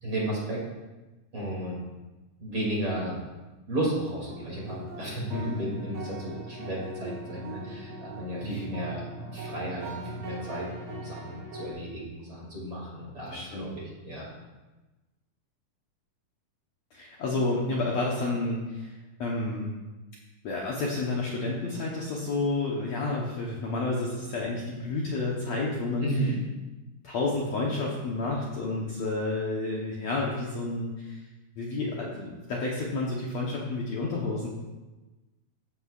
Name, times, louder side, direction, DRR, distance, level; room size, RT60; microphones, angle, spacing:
voice 1, 0.0-0.6 1.3-1.8 2.4-3.2 3.7-9.0 9.3-10.7 10.9-14.3 26.0-26.4, right 1 dB, 35° right, -5 dB, 3.1 m, -33 dB
sound 1, 4.2-11.7, right 1 dB, 80° right, 4.2 m, -40 dB
voice 2, 13.3-13.7 16.9-18.9 19.2-19.8 20.4-26.1 27.0-31.2 31.6-34.5, left 2 dB, 65° left, -4 dB, 1.9 m, -30 dB
14.5 x 8.6 x 2.5 m, 1.1 s
omnidirectional pair, 4.2 m